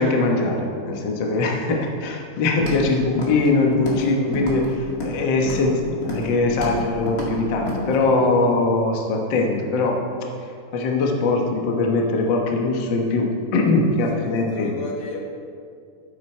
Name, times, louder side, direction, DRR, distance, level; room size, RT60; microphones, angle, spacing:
voice 1, 0.0-10.0 10.7-14.7, left 3 dB, 55° left, 1 dB, 1.4 m, -21 dB
Walk footsteps, 2.6-2.9 3.2-3.5 3.7-4.1 4.3-5.2 5.5-5.7 6.0-6.3 6.6-6.8 7.1-7.3 7.7-7.8, left 2 dB, 30° left, 2.1 m, -30 dB
voice 2, 8.0-8.4 14.0-15.2, left 3 dB, 80° left, -1 dB, 3.1 m, -34 dB
12.5 x 9.1 x 4.4 m, 2.3 s
omnidirectional pair, 3.6 m